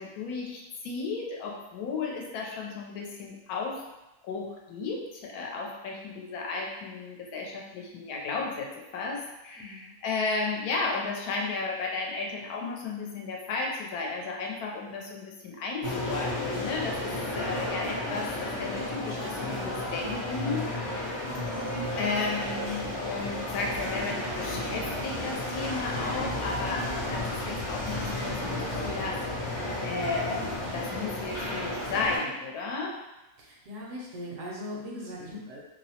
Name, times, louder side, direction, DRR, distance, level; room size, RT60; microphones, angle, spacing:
voice 1, 0.0-3.8 4.2-20.7 21.5-29.5 29.8-33.0, left 4 dB, 85° left, -1 dB, 1.1 m, -34 dB
voice 2, 9.6-9.9 33.4-35.6, left 1 dB, 70° right, -3 dB, 0.8 m, -40 dB
sound 1, 15.8-32.2, left 1 dB, 65° left, 0.4 m, -32 dB
2.6 x 2.0 x 2.7 m, 0.98 s
omnidirectional pair, 1.6 m